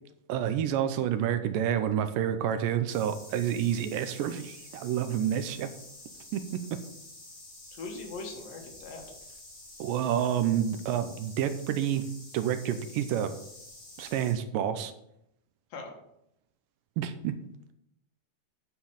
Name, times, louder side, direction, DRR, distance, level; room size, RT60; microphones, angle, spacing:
voice 1, 0.3-5.7 6.3-6.6 9.8-12.1 12.3-13.3 14.0-14.9 17.0-17.4, right 10 dB, 85° right, 10 dB, 2.3 m, -29 dB
sound 1, 2.9-14.3, left 2 dB, 30° left, 3.3 m, -49 dB
voice 2, 7.8-9.0 15.7-15.9, left 3 dB, 75° left, 2 dB, 3.2 m, -40 dB
9.5 x 4.5 x 7.0 m, 0.78 s
omnidirectional pair, 4.0 m